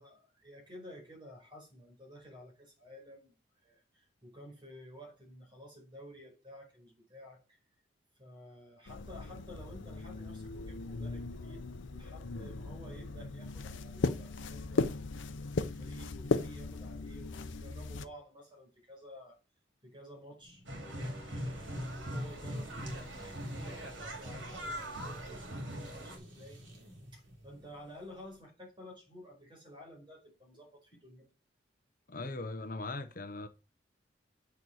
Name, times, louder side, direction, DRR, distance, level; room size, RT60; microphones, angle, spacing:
voice 1, 0.0-3.4 3.6-7.6 8.2-11.6 11.9-15.2 15.6-19.4 19.8-26.6 27.1-31.2, equal, 25° right, 5.0 m, -52 dB
sound 1, 8.9-18.1, left 3 dB, 90° left, 0.7 m, -37 dB
sound 2, 20.4-28.4, equal, 70° right, 4.0 m, -53 dB
sound 3, 20.6-26.2, equal, 85° right, 3.4 m, -40 dB
voice 2, 32.1-33.5, left 2 dB, 50° left, 0.9 m, -39 dB
8.3 x 6.8 x 6.4 m
head